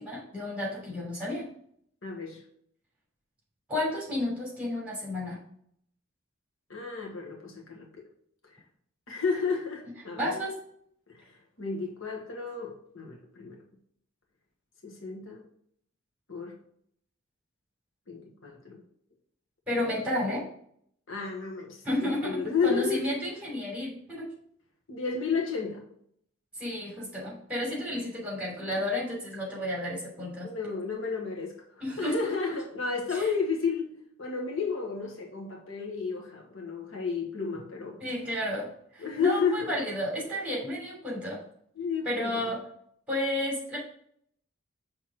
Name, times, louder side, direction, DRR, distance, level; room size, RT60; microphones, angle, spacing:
voice 1, 0.0-1.4 3.7-5.4 10.2-10.5 19.7-20.4 21.8-24.3 26.6-30.5 31.8-32.3 33.1-33.3 38.0-38.7 38.9-41.4 42.0-42.6 43.1-43.8, left 1 dB, 5° right, 3.1 m, -32 dB
voice 2, 2.0-2.4 6.7-8.0 9.1-10.4 11.1-13.6 14.8-15.4 16.3-16.5 18.1-18.8 21.1-23.1 24.9-25.8 27.9-28.0 30.4-31.5 32.0-33.9 34.2-38.0 39.0-39.8 41.8-42.5, left 5 dB, 70° left, 1.3 m, -32 dB
6.0 x 3.6 x 6.0 m
head